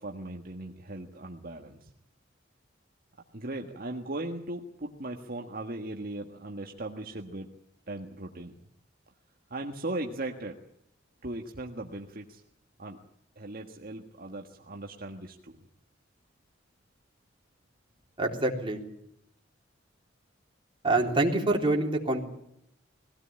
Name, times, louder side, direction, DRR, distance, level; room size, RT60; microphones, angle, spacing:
voice 1, 0.0-1.9 3.3-7.5 7.9-8.5 9.5-10.6 11.2-12.4 12.8-13.0 13.4-15.6, right 2 dB, 50° right, 2 dB, 1.6 m, -38 dB
voice 2, 18.2-18.8 20.8-22.2, right 2 dB, 25° right, 1 dB, 3.6 m, -26 dB
21.5 x 17.0 x 8.8 m, 0.78 s
head